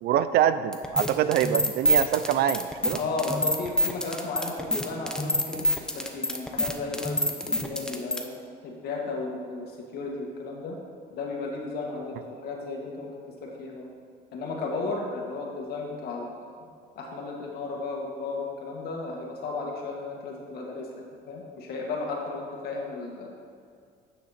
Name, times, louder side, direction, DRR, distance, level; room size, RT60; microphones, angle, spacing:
voice 1, 0.0-3.0, right 10 dB, 70° right, 13 dB, 0.5 m, -24 dB
sound 1, 0.7-8.2, equal, 5° left, 0.8 m, -26 dB
voice 2, 3.0-5.7 5.9-10.8 11.1-13.1 13.4-13.9 14.3-16.6 17.0-20.9 21.3-23.4, left 3 dB, 70° left, -1 dB, 1.9 m, -34 dB
9.4 x 6.7 x 4.2 m, 2.2 s
cardioid pair, 110°, 17 cm